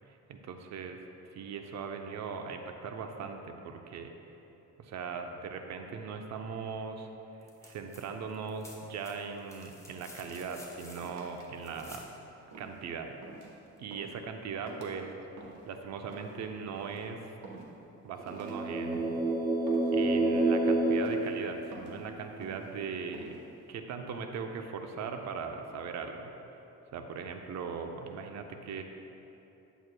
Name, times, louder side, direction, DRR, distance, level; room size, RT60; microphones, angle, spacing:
voice 1, 0.1-1.0 1.3-4.1 4.8-7.1 7.4-12.0 12.6-13.2 13.8-15.1 15.7-17.2 18.0-19.2 19.9-23.3 23.7-26.3 26.9-28.8, right 5 dB, 65° right, 5 dB, 0.6 m, -39 dB
sound 1, 7.4-8.0 8.3-12.1 13.8-13.9, left 2 dB, 10° left, 1.3 m, -52 dB
sound 2, 10.3-11.5 11.8-12.1 12.5-12.8 13.2-13.6 13.9-14.2 14.7-15.0 15.4-15.7 16.1-16.4 16.8-17.0 17.4-17.9 18.2-18.6 18.9-19.3 19.7-20.0 20.4-20.7 21.0-21.3 21.7-22.0 22.4-22.7 23.1-23.4, right 3 dB, 80° right, 1.1 m, -49 dB
sound 3, 18.3-22.1, right 2 dB, 15° right, 0.4 m, -28 dB
9.0 x 7.7 x 2.2 m, 2.9 s
cardioid pair, 90°, 30 cm